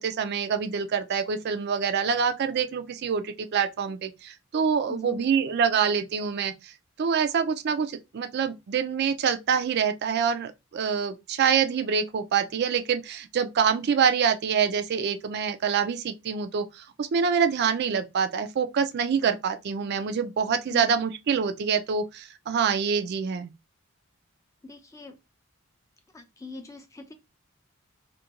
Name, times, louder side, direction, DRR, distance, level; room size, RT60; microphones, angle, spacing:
voice 1, 0.0-6.7 7.0-23.5, right 6 dB, 50° right, 0.3 m, -26 dB
voice 2, 4.9-5.2 20.7-20.9 24.6-25.2 26.1-27.1, left 3 dB, 15° left, 0.4 m, -41 dB
2.4 x 2.2 x 2.8 m
head